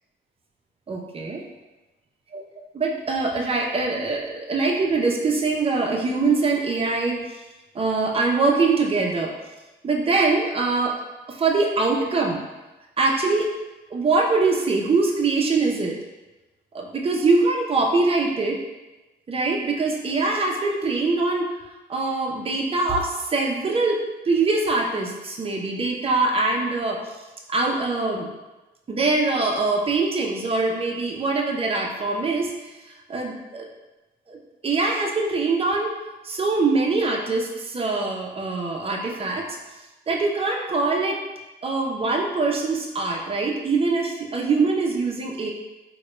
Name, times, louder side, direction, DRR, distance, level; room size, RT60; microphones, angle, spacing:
voice 1, 0.9-1.4 2.3-2.4 2.7-7.2 7.7-9.3 9.8-11.0 11.3-12.4 13.0-13.5 13.9-16.0 16.7-18.6 19.3-21.5 21.9-27.0 27.5-28.3 28.9-32.7 33.1-33.7 34.3-34.4 34.6-35.9 36.2-39.5 40.1-41.2 41.6-45.5, right 3 dB, 30° right, 1 dB, 0.6 m, -23 dB
3.6 x 2.2 x 3.1 m, 1.1 s
cardioid pair, 90°, 20 cm